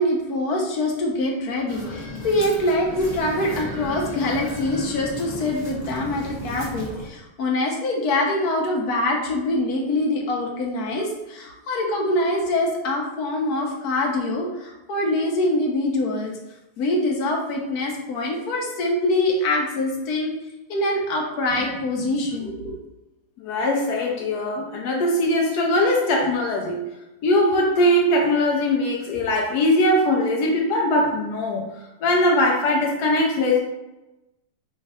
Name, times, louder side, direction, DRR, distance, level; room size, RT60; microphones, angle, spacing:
voice 1, 0.0-16.3 16.8-20.3 20.7-22.8, left 1 dB, 60° left, 0 dB, 1.1 m, -24 dB
sound 1, 1.7-7.1, equal, 15° left, 0.8 m, -35 dB
voice 2, 23.4-26.9 27.2-31.7 32.0-33.6, left 1 dB, 75° left, 0 dB, 0.9 m, -21 dB
3.3 x 3.2 x 4.8 m, 0.99 s
omnidirectional pair, 2.4 m